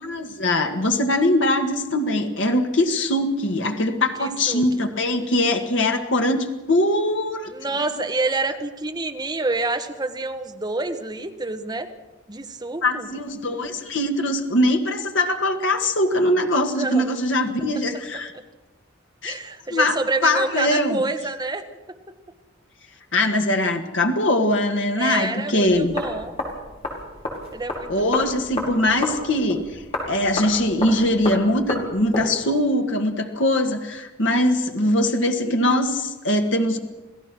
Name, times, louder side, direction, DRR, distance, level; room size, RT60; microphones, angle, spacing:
voice 1, 0.0-7.5 7.8-7.9 12.8-18.3 19.2-19.4 19.7-20.0 20.2-21.0 23.1-26.0 27.9-36.8, left 1 dB, 70° left, 4 dB, 1.8 m, -22 dB
voice 2, 3.9-4.7 7.5-11.9 12.3-13.1 16.6-17.1 18.3-18.4 19.2-21.6 25.0-26.3 27.5-28.3, right 3 dB, 20° right, 6 dB, 1.3 m, -28 dB
sound 1, 25.7-32.3, left 1 dB, 30° left, 5.0 m, -32 dB
27.5 x 16.5 x 6.2 m, 1.1 s
head